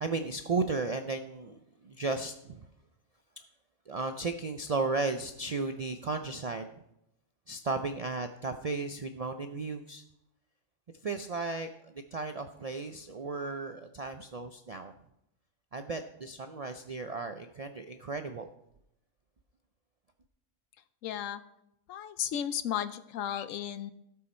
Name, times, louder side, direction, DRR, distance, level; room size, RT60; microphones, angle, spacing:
voice 1, 0.0-2.7 3.9-6.7 7.5-10.0 11.0-14.9 15.7-18.5, right 3 dB, 60° right, 7 dB, 0.4 m, -35 dB
voice 2, 21.0-21.4 21.9-23.9, left 10 dB, 85° left, 13 dB, 1.0 m, -34 dB
17.0 x 5.6 x 4.3 m, 0.81 s
omnidirectional pair, 1.3 m